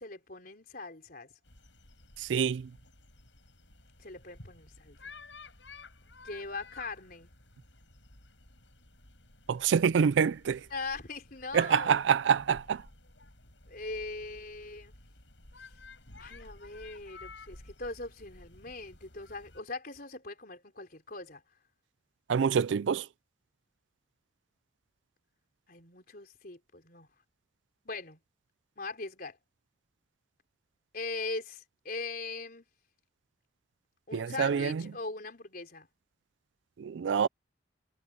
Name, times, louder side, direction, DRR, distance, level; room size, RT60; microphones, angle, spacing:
voice 1, 0.0-1.3 4.0-5.1 6.2-7.3 10.7-11.9 13.7-14.9 16.2-21.4 25.7-27.1 27.8-28.2 28.8-29.4 30.9-32.6 34.1-35.9, left 3 dB, 50° left, 4.0 m, -40 dB
sound 1, 1.4-19.6, left 3 dB, 80° left, 7.4 m, -53 dB
voice 2, 2.2-2.8 9.5-10.7 11.5-12.9 22.3-23.1 34.1-34.9 36.8-37.3, right 7 dB, 80° right, 0.4 m, -26 dB
head